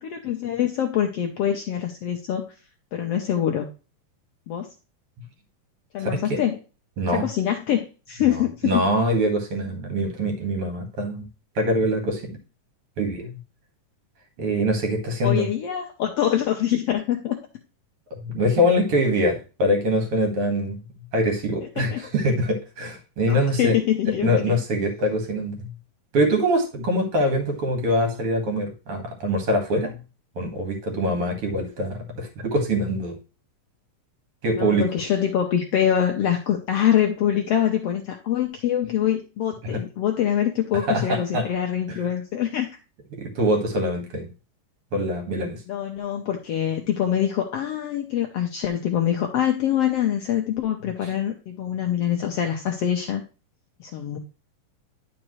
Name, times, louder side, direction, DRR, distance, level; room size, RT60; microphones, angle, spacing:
voice 1, 0.0-2.5 2.9-3.7 4.5-4.7 5.9-6.6 7.1-8.8 15.2-17.4 21.8-22.0 23.3-24.6 34.6-42.7 45.7-53.2 53.8-54.2, left 10 dB, 85° left, 3 dB, 1.3 m, -24 dB
voice 2, 6.0-6.4 7.0-7.3 8.3-11.3 11.6-12.4 13.0-13.4 14.4-15.5 18.1-20.8 21.1-23.8 24.2-25.7 26.1-29.9 30.4-33.2 34.4-34.9 40.8-41.4 41.9-42.0 43.1-44.3 44.9-45.6 51.0-51.1, equal, 45° right, 4 dB, 2.5 m, -24 dB
11.0 x 5.1 x 3.1 m, 0.32 s
omnidirectional pair, 4.0 m